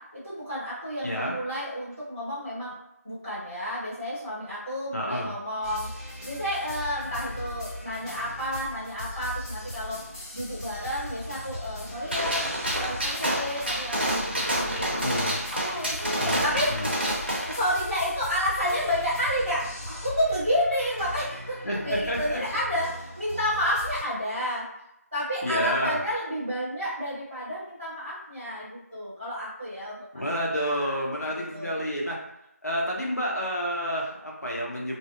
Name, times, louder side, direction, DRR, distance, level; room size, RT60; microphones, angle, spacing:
voice 1, 0.0-2.8 3.0-12.5 12.8-15.2 15.6-16.8 17.5-24.7 25.1-30.3 30.6-31.7, equal, ahead, -18 dB, 0.7 m, -31 dB
voice 2, 1.0-1.3 4.9-5.3 14.9-15.4 16.2-16.9 21.6-22.4 25.4-26.0 30.1-32.2 32.6-35.0, equal, 80° left, -3 dB, 0.8 m, -29 dB
sound 1, 5.6-24.0, left 1 dB, 25° left, 1.4 m, -39 dB
Gunshot gunfire, 12.1-17.6, right 1 dB, 40° right, 0.5 m, -28 dB
2.6 x 2.1 x 2.5 m, 0.82 s
figure-of-eight pair, 170°, 9 cm